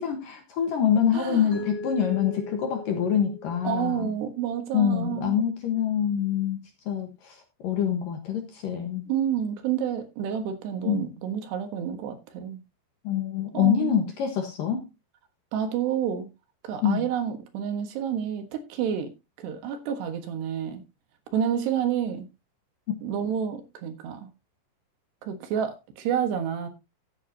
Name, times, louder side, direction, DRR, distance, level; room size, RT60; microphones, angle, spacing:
voice 1, 0.0-4.1 4.7-6.6 6.9-9.1 10.8-11.1 13.0-14.9 16.8-17.1, left 8 dB, 60° left, 2.4 m, -25 dB
voice 2, 1.1-1.5 3.7-5.3 9.1-12.6 13.5-14.0 15.5-16.3 16.6-19.1 19.4-20.8 21.3-22.3 23.0-24.3 25.2-26.7, right 8 dB, 70° right, 3.4 m, -29 dB
Mallet percussion, 1.5-4.4, left 3 dB, 40° left, 4.1 m, -40 dB
14.5 x 8.7 x 2.8 m
omnidirectional pair, 5.3 m